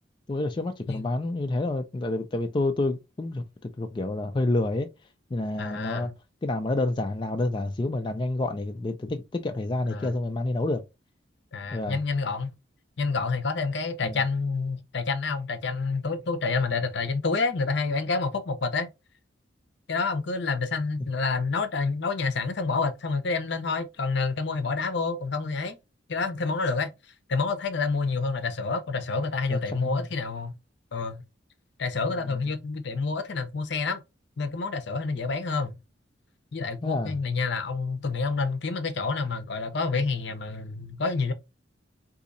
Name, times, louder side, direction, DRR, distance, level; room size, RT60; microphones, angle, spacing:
voice 1, 0.3-4.9 5.3-6.1 6.4-10.8 11.7-12.0 14.0-14.2 29.5-30.0 36.8-37.1, left 2 dB, 25° left, 0.3 m, -28 dB
voice 2, 5.6-6.1 9.9-10.1 11.5-12.5 13.0-18.9 19.9-25.8 26.1-26.9 27.3-30.5 30.9-31.2 31.8-34.0 34.4-35.7 36.5-41.3, left 4 dB, 60° left, 0.6 m, -28 dB
4.0 x 2.7 x 2.5 m
head